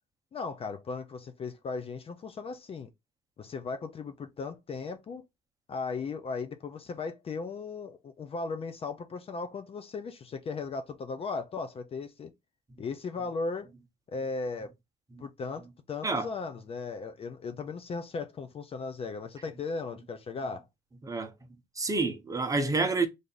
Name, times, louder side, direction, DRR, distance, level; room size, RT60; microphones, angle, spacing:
voice 1, 0.3-2.9 3.4-5.2 5.7-12.3 12.8-13.7 14.1-14.7 15.2-20.6, left 4 dB, 35° left, 0.5 m, -37 dB
voice 2, 21.8-23.1, right 3 dB, 20° right, 0.8 m, -28 dB
3.3 x 2.6 x 3.9 m
cardioid pair, 110°, 17 cm